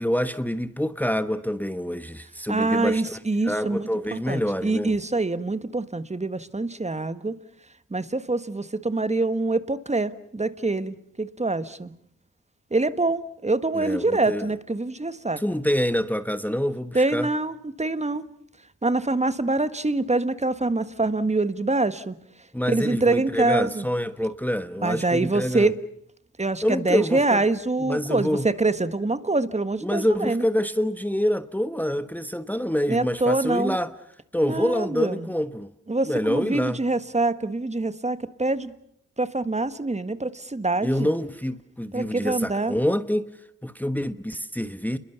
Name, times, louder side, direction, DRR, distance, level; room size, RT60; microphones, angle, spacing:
voice 1, 0.0-4.9 13.7-14.5 15.4-17.3 22.5-25.7 26.6-27.4 27.8-28.5 29.8-33.9 34.3-35.7 36.1-36.8 40.8-43.3 43.6-45.0, equal, 5° left, 1.2 m, -26 dB
voice 2, 2.5-7.4 7.9-11.9 12.7-15.4 16.9-18.2 18.8-22.1 22.7-23.8 24.8-25.8 26.4-30.4 32.9-33.7 34.4-35.3 35.9-38.7 39.2-41.1 41.9-42.7, right 2 dB, 20° right, 1.5 m, -25 dB
29.5 x 22.0 x 7.0 m
cardioid pair, 55°, 31 cm